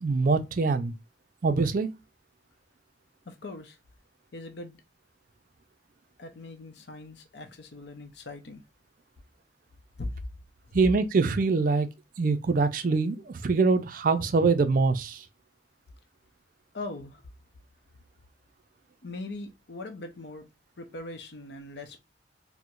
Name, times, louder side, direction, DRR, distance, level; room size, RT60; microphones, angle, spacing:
voice 1, 0.0-0.9 1.4-1.9 10.7-11.9 12.2-15.2, right 4 dB, 45° right, 0.4 m, -24 dB
voice 2, 3.3-3.8 4.3-4.8 6.2-8.6 10.0-10.1 16.7-17.2 19.0-20.5 20.8-22.0, left 2 dB, 65° left, 0.6 m, -40 dB
4.4 x 2.1 x 2.4 m
head